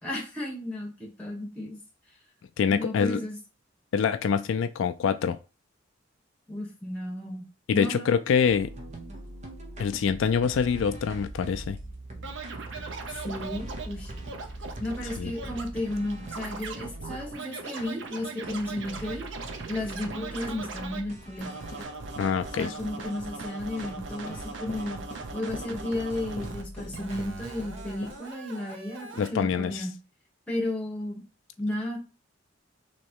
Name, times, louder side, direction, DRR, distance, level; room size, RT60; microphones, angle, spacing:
voice 1, 0.0-1.8 2.7-3.4 6.5-8.1 13.1-14.1 14.8-19.3 19.7-21.6 22.5-25.0 25.3-30.0 30.5-31.2 31.6-32.0, left 1 dB, 5° left, -1 dB, 1.3 m, -33 dB
voice 2, 2.6-3.2 3.9-5.4 7.7-8.7 9.8-11.8 15.2-15.3 22.2-22.7 29.2-29.9, left 6 dB, 75° left, 11 dB, 0.3 m, -25 dB
sound 1, 8.4-17.3 17.8-17.9 18.4-22.8 23.1-23.2 23.4-23.5 23.8-26.2 26.4-28.2, right 1 dB, 35° right, 0.8 m, -42 dB
Scratching (performance technique), 12.2-21.0 21.4-26.6 26.9-29.3, right 3 dB, 70° right, 0.6 m, -40 dB
sound 2, 21.4-28.2, left 1 dB, 40° left, 0.9 m, -45 dB
3.1 x 3.0 x 4.5 m, 0.31 s
head